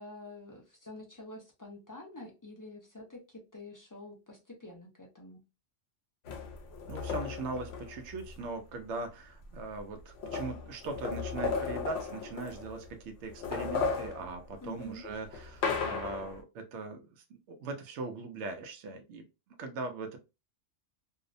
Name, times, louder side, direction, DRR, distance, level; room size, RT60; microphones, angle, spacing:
voice 1, 0.0-5.4 14.6-15.0, left 2 dB, 30° left, -1 dB, 0.4 m, -47 dB
sound 1, 6.3-8.4 9.4-9.5 9.8-12.9 13.3-16.4, left 5 dB, 65° left, 0.8 m, -36 dB
voice 2, 6.9-19.3 19.6-20.2, right 3 dB, 75° right, 5 dB, 0.9 m, -40 dB
2.7 x 2.0 x 2.5 m, 0.27 s
omnidirectional pair, 1.2 m